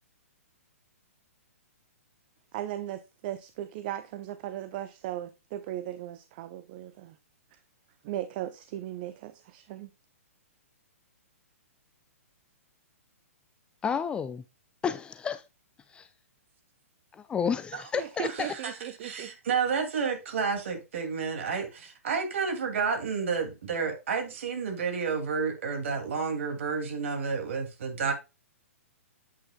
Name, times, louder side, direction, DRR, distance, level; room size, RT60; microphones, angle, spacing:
voice 1, 2.5-7.2 8.0-9.9 17.9-19.4, right 12 dB, 40° right, 0.6 m, -37 dB
voice 2, 13.8-14.4 14.8-15.4 15.9-16.1 17.1-18.5, left 7 dB, 10° left, 0.4 m, -31 dB
voice 3, 18.2-18.7 19.0-28.1, right 5 dB, 60° right, 2.5 m, -30 dB
8.7 x 8.4 x 2.3 m
figure-of-eight pair, 120°, 8 cm